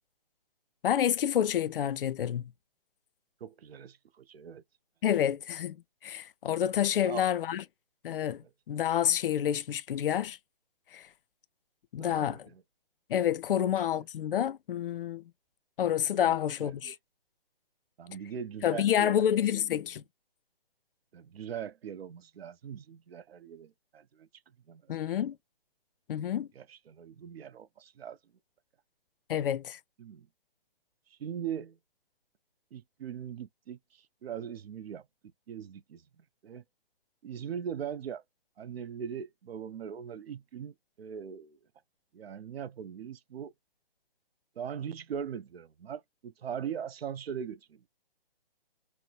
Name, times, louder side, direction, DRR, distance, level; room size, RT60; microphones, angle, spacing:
voice 1, 0.8-2.5 5.0-5.8 6.0-7.6 8.0-10.4 10.9-11.1 11.9-12.5 13.1-15.2 15.8-17.0 18.6-20.0 24.9-25.4 26.1-26.5 29.3-29.8, left 10 dB, 65° left, 0.4 m, -28 dB
voice 2, 3.4-4.6 6.9-7.3 8.4-8.5 12.0-12.6 16.1-16.3 16.6-16.9 18.0-19.2 21.1-24.3 24.7-25.2 26.6-28.2 30.0-30.3 31.1-31.8 32.7-35.0 35.5-36.0 36.4-36.6 37.2-38.2 38.6-41.6 42.1-43.5 44.6-47.9, right 8 dB, 85° right, 0.5 m, -40 dB
4.3 x 2.0 x 2.3 m
hypercardioid pair, 145°, 29 cm